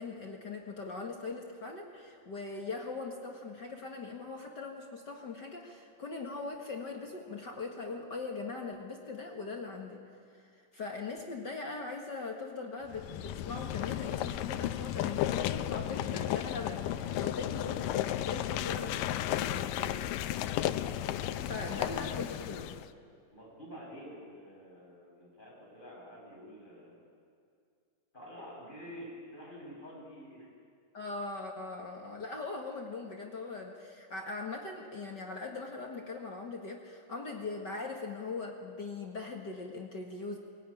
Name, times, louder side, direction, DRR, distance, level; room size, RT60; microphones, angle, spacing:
voice 1, 0.0-10.0 10.3-20.0 21.0-22.8 30.9-40.4, left 3 dB, 45° left, 1 dB, 1.6 m, -41 dB
sound 1, 12.9-22.9, left 12 dB, 80° left, 2.3 m, -34 dB
voice 2, 21.2-22.4 23.3-27.0 28.1-30.5, equal, 15° left, -4 dB, 7.1 m, -48 dB
23.0 x 20.0 x 9.9 m, 2.3 s
omnidirectional pair, 4.0 m